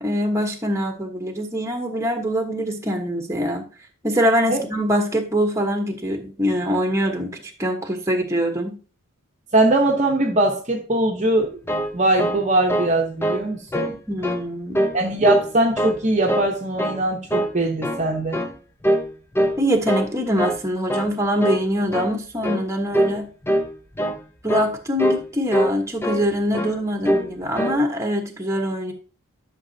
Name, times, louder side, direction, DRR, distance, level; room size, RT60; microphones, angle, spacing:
voice 1, 0.0-3.6 4.0-8.8 13.9-14.8 19.6-23.3 24.4-28.9, equal, 15° right, 1.2 m, -23 dB
voice 2, 9.5-11.6 11.9-13.9 14.9-18.4, right 2 dB, 30° right, 0.9 m, -21 dB
sound 1, 11.4-13.0 13.2-13.5 13.7-14.4 14.7-15.5 15.8-16.5 16.8-17.0 17.3-18.1 18.3-18.6 18.8-19.1 19.4-20.1 20.4-20.6 20.9-21.1 21.4-21.7 21.9-22.2 22.4-22.7 22.9-23.2 23.4-23.7 24.0-24.2 24.5-24.7 25.0-25.2 25.5-26.3 26.5-26.8 27.0-27.3 27.6-27.8, equal, 10° left, 0.6 m, -23 dB
11.5 x 6.1 x 2.8 m
head